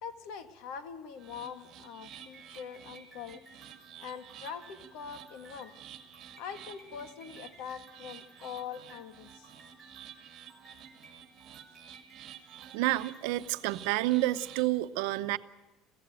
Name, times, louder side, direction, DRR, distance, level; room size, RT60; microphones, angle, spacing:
voice 1, 0.0-3.4 4.0-5.7 6.4-9.5, left 7 dB, 70° left, 9 dB, 1.8 m, -43 dB
sound 1, 1.2-13.2, right 2 dB, ahead, 6.2 m, -58 dB
sound 2, 1.2-14.7, right 10 dB, 45° right, 2.2 m, -51 dB
voice 2, 12.7-15.4, right 17 dB, 85° right, 12 dB, 0.8 m, -29 dB
22.5 x 16.0 x 9.1 m, 1.1 s
cardioid pair, 155°, 0 cm